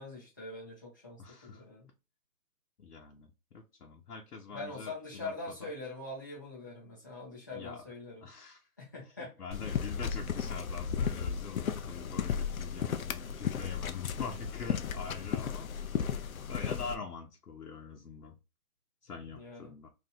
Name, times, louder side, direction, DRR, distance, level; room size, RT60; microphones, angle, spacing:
voice 1, 0.0-1.9 4.5-8.3 8.8-9.3 19.3-19.7, left 2 dB, 15° left, -8 dB, 0.7 m, -43 dB
voice 2, 1.2-1.6 2.8-5.7 7.5-7.9 8.2-8.7 9.2-15.7 16.5-18.4 19.0-19.9, left 5 dB, 85° left, 0 dB, 0.9 m, -44 dB
sound 1, 9.5-17.0, left 7 dB, 65° left, 0.5 m, -34 dB
2.7 x 2.3 x 3.9 m, 0.27 s
hypercardioid pair, 165°, 45 cm